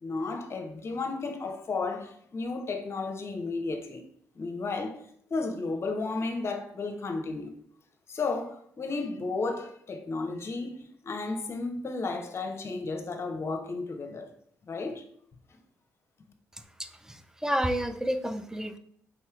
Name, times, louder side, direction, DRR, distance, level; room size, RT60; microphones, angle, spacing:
voice 1, 0.0-4.0 4.4-5.0 5.3-7.5 8.1-14.3 14.7-15.0 15.5-15.6, left 3 dB, 45° left, 0.7 m, -33 dB
voice 2, 17.1-18.8, equal, 10° right, 0.5 m, -30 dB
4.2 x 3.7 x 2.4 m
hypercardioid pair, 45°, 6 cm